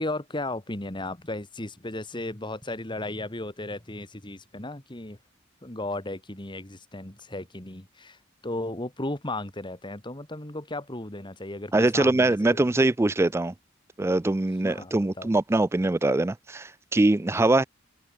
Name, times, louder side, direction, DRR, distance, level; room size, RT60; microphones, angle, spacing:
voice 1, 0.0-5.2 5.6-8.2 8.4-12.7 14.6-15.3, left 2 dB, 25° left, 2.3 m, -35 dB
voice 2, 11.7-13.5 14.0-17.6, right 2 dB, 15° right, 0.4 m, -23 dB
head